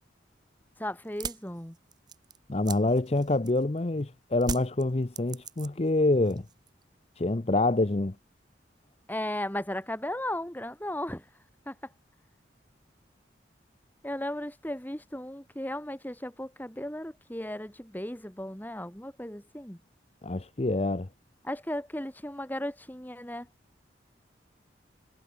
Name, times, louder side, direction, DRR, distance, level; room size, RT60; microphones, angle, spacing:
voice 1, 0.8-1.8 9.1-11.2 11.7-11.8 14.0-19.8 21.4-23.5, left 1 dB, 10° left, 2.2 m, -35 dB
sound 1, 1.1-3.8 4.4-6.0 6.2-6.8, right 5 dB, 20° right, 0.8 m, -39 dB
voice 2, 2.5-6.5 7.2-8.2 20.2-21.1, left 2 dB, 35° left, 0.7 m, -26 dB
head